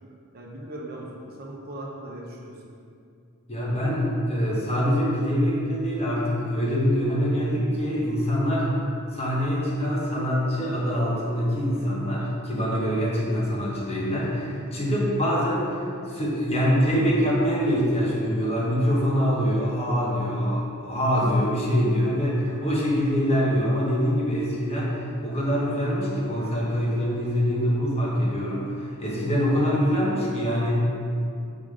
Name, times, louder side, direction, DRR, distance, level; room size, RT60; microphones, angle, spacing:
voice 1, 0.3-2.5, right 1 dB, 45° right, -2 dB, 0.8 m, -38 dB
voice 2, 3.5-8.7 9.1-15.8 16.1-24.9 25.2-30.8, equal, 30° left, -5 dB, 1.1 m, -24 dB
5.1 x 3.7 x 5.0 m, 2.4 s
head